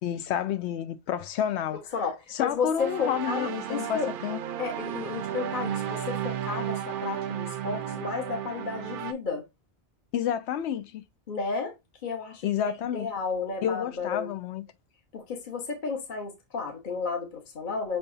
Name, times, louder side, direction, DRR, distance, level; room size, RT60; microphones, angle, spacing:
voice 1, 0.0-1.8 2.3-4.4 10.1-11.0 12.4-13.1 13.6-14.6, left 9 dB, 75° left, 0.8 m, -30 dB
voice 2, 1.9-4.1 4.6-9.5 11.3-11.7 12.0-14.3 15.1-18.0, left 5 dB, 45° left, 1.0 m, -32 dB
sound 1, 2.8-9.1, right 10 dB, 60° right, 0.6 m, -33 dB
5.6 x 3.4 x 2.5 m
omnidirectional pair, 1.2 m